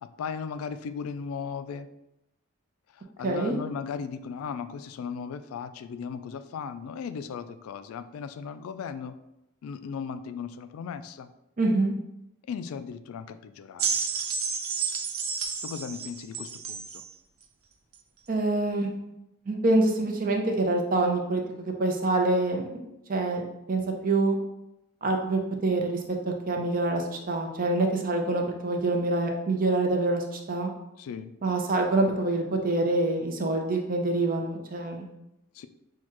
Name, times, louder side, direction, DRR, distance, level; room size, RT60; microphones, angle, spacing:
voice 1, 0.0-1.9 3.2-9.2 9.6-11.3 12.5-14.0 15.6-17.0 31.0-31.3 35.6-35.7, left 6 dB, 85° left, 12 dB, 0.3 m, -37 dB
voice 2, 3.2-3.6 11.6-11.9 18.3-18.9 19.5-22.8 23.1-23.4 23.7-24.4 25.0-26.2 26.5-30.7 31.4-35.0, right 2 dB, 40° right, 2 dB, 0.6 m, -26 dB
sound 1, 13.8-17.1 17.9-18.0, right 6 dB, 80° right, 0.6 m, -31 dB
6.2 x 2.3 x 2.9 m, 0.88 s
head